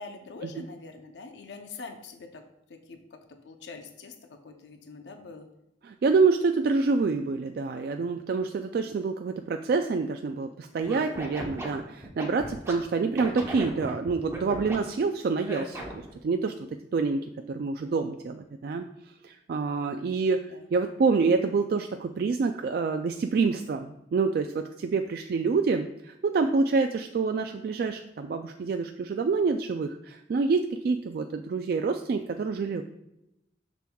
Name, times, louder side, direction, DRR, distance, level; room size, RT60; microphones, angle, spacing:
voice 1, 0.0-2.4 2.7-4.1 4.4-5.5 20.1-20.7, left 4 dB, 80° left, 5 dB, 0.6 m, -44 dB
voice 2, 5.8-16.5 16.9-18.8 19.2-20.4 20.7-32.8, right 4 dB, 55° right, 6 dB, 0.3 m, -27 dB
Scratching (performance technique), 10.8-12.7 13.2-14.8 15.4-16.1, right 1 dB, 15° right, 0.9 m, -36 dB
6.7 x 6.2 x 2.3 m, 0.85 s
head